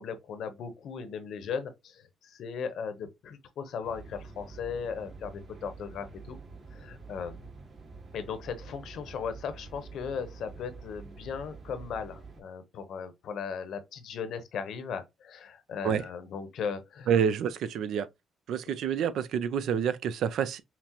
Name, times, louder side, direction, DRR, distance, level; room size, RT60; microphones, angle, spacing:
voice 1, 0.0-6.4 6.7-7.5 8.1-17.1, left 6 dB, 70° left, 0.8 m, -37 dB
sound 1, 3.8-12.4, right 4 dB, 50° right, 1.7 m, -47 dB
voice 2, 17.1-18.1 18.5-20.6, right 8 dB, 75° right, 0.4 m, -28 dB
5.8 x 2.0 x 2.9 m
cardioid pair, 90°, 0 cm